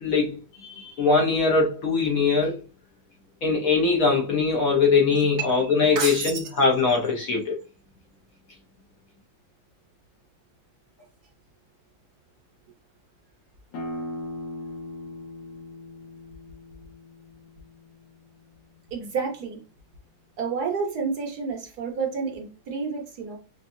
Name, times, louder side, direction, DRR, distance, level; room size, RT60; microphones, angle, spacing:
voice 1, 0.0-2.6 3.4-7.6, left 4 dB, 60° left, 1.0 m, -22 dB
voice 2, 5.4-6.5 18.9-19.6 20.4-23.4, right 5 dB, 65° right, 1.3 m, -30 dB
sound 1, 13.7-19.1, left 1 dB, 75° left, 1.7 m, -39 dB
5.3 x 2.3 x 2.6 m
omnidirectional pair, 2.0 m